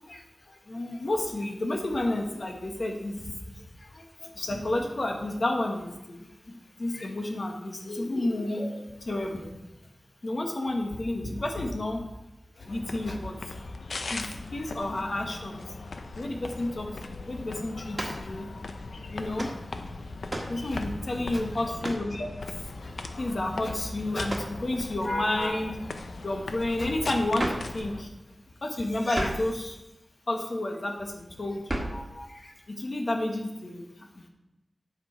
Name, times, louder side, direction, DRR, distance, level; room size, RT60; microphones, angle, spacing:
voice 1, 0.1-9.6 10.2-12.0 12.6-14.2 14.5-15.6 16.1-18.5 19.1-19.5 20.4-25.9 26.2-28.1 28.6-29.8 30.3-34.3, left 1 dB, 55° left, 2 dB, 1.4 m, -31 dB
sound 1, 12.7-28.0, left 3 dB, 80° left, 0.6 m, -39 dB
sound 2, 17.9-18.3 19.4-19.6 20.3-20.6 21.8-22.1 24.3-24.6 27.4-27.7 29.1-29.5 31.7-32.0, right 1 dB, 35° right, 1.4 m, -33 dB
9.2 x 5.5 x 4.5 m, 0.97 s
wide cardioid pair, 95°, 0 cm